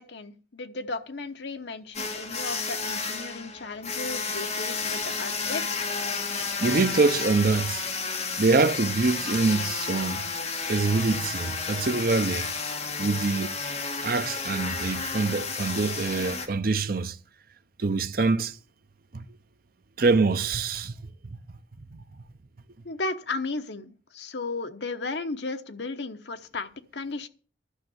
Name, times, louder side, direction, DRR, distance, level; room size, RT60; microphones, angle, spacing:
voice 1, 0.0-5.9 22.8-27.3, left 3 dB, 65° left, 1.0 m, -35 dB
sound 1, 1.9-16.5, left 4 dB, 35° left, 1.8 m, -32 dB
voice 2, 6.6-7.8 8.4-10.2 10.7-12.5 13.0-13.6 14.0-17.2 17.8-18.5 19.1-19.2 20.0-21.0 21.9-22.0, right 3 dB, 50° right, 0.6 m, -25 dB
12.0 x 6.4 x 7.8 m
head